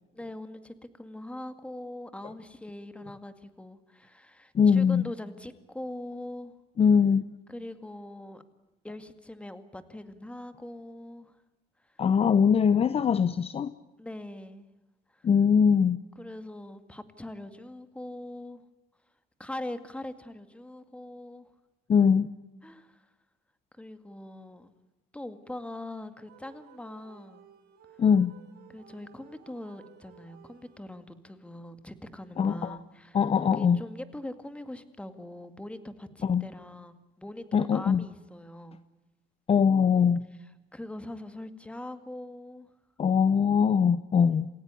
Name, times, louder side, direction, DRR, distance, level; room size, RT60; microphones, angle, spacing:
voice 1, 0.1-6.5 7.5-8.4 8.8-11.4 11.8-12.0 14.0-14.7 15.1-15.3 16.2-18.6 19.4-21.5 22.6-23.1 23.7-24.7 25.1-27.5 28.7-38.8 40.7-42.7, left 1 dB, 5° left, 11 dB, 2.1 m, -42 dB
voice 2, 4.5-5.0 6.8-7.2 12.0-13.7 15.2-16.0 21.9-22.3 28.0-28.3 32.4-32.8 33.1-33.8 36.2-36.4 37.5-38.1 39.5-40.2 43.0-44.5, left 6 dB, 35° left, 15 dB, 0.8 m, -22 dB
sound 1, 26.3-31.2, right 9 dB, 75° right, 4.9 m, -56 dB
28.0 x 16.5 x 9.9 m, 1.0 s
cardioid pair, 110°, 17 cm